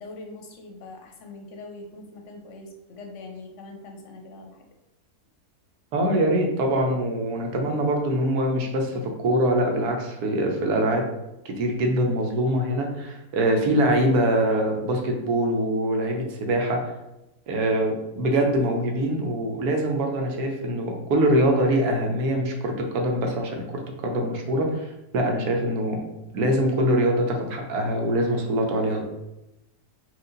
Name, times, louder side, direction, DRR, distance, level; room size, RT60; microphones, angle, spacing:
voice 1, 0.0-4.7, left 2 dB, 60° left, 2 dB, 0.9 m, -42 dB
voice 2, 5.9-11.0 11.4-16.8 17.5-23.6 24.0-26.0 26.3-29.1, right 1 dB, 80° right, 2 dB, 1.3 m, -23 dB
4.7 x 2.5 x 3.8 m, 0.94 s
omnidirectional pair, 1.6 m